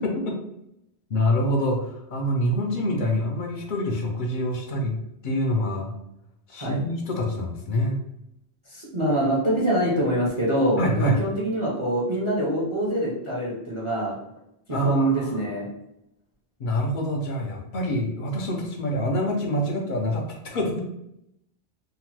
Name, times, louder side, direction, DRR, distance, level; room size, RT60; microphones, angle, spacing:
voice 1, 0.0-0.4 1.1-5.0 5.2-5.9 6.5-8.0 10.8-11.2 14.7-15.5 16.6-20.8, equal, 55° left, 1 dB, 0.6 m, -26 dB
voice 2, 8.7-14.2 14.7-15.7, right 1 dB, 35° right, -6 dB, 0.6 m, -25 dB
2.8 x 2.1 x 3.0 m, 0.81 s
omnidirectional pair, 1.2 m